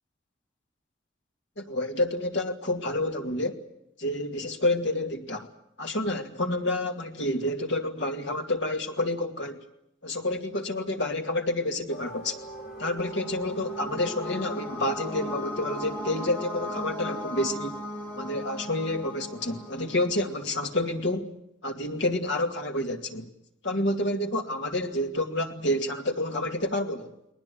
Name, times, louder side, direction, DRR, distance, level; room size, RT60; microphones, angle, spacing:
voice 1, 1.6-3.6 4.0-5.5 5.8-9.6 10.0-12.3 12.8-17.8 18.2-21.3 21.6-23.3 23.6-27.1, left 1 dB, 65° left, 2.5 m, -29 dB
sound 1, 11.9-21.0, equal, 45° left, 4.3 m, -43 dB
sound 2, 12.6-20.4, left 1 dB, 10° left, 3.1 m, -38 dB
20.5 x 20.0 x 9.9 m
head